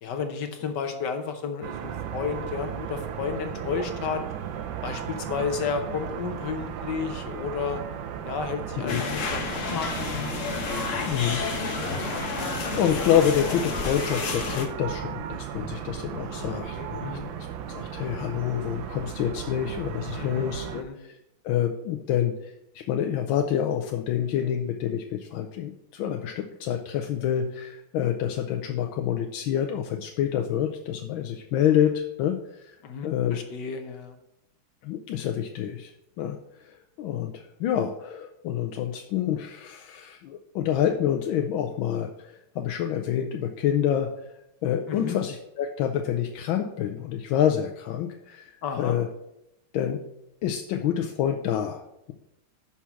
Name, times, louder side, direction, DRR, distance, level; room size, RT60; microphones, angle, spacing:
voice 1, 0.0-4.2 4.8-7.8 8.2-10.3 16.3-17.3 20.1-21.0 32.8-34.2 44.9-45.2 48.6-48.9, left 6 dB, 65° left, 6 dB, 1.3 m, -32 dB
sound 1, 1.6-20.8, right 9 dB, 75° right, 1.4 m, -35 dB
sound 2, 8.9-14.6, left 5 dB, 50° left, 1.1 m, -31 dB
voice 2, 11.0-21.2 21.4-22.5 22.9-32.7 33.0-33.4 34.8-35.9 36.2-44.1 44.6-48.5 48.8-49.1 49.7-50.0 50.4-51.8, left 10 dB, 85° left, 4 dB, 1.4 m, -27 dB
5.8 x 5.6 x 6.1 m, 0.85 s
omnidirectional pair, 2.2 m